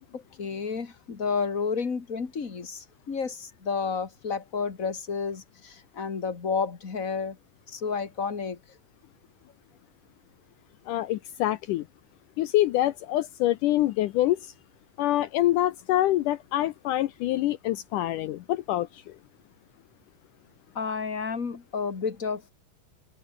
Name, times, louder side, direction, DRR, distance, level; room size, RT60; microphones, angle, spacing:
voice 1, 0.1-7.4 7.7-8.6 20.7-22.5, left 5 dB, 35° left, 1.5 m, -31 dB
voice 2, 10.9-11.8 12.4-14.5 15.0-19.0, left 14 dB, 80° left, 1.9 m, -25 dB
open air
omnidirectional pair, 4.5 m